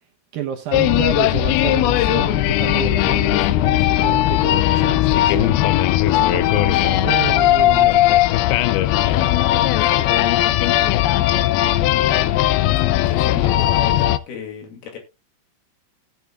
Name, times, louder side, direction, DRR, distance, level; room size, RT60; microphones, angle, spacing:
voice 1, 0.3-5.6 6.0-8.0, right 10 dB, 70° right, 2.3 m, -29 dB
sound 1, 0.7-14.2, left 14 dB, 80° left, 2.3 m, -17 dB
voice 2, 9.0-9.4 9.8-10.9 12.1-12.4 13.0-15.0, left 6 dB, 65° left, 4.1 m, -34 dB
16.5 x 8.2 x 2.3 m
omnidirectional pair, 5.1 m